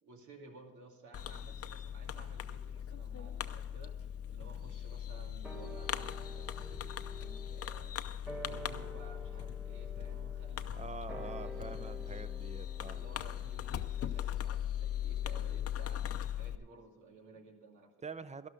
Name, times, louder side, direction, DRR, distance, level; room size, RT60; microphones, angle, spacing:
voice 1, 0.0-8.0 8.4-11.9 12.9-17.9, right 3 dB, 75° right, 2 dB, 2.5 m, -56 dB
Fireworks, 1.1-16.6, left 10 dB, 50° left, 0.7 m, -39 dB
sound 1, 5.4-16.1 16.3-16.4, right 1 dB, 5° right, 1.7 m, -51 dB
voice 2, 10.8-13.0 18.0-18.5, right 4 dB, 20° right, 13 dB, 0.8 m, -45 dB
12.5 x 12.0 x 5.2 m, 1.2 s
cardioid pair, 90°, 30 cm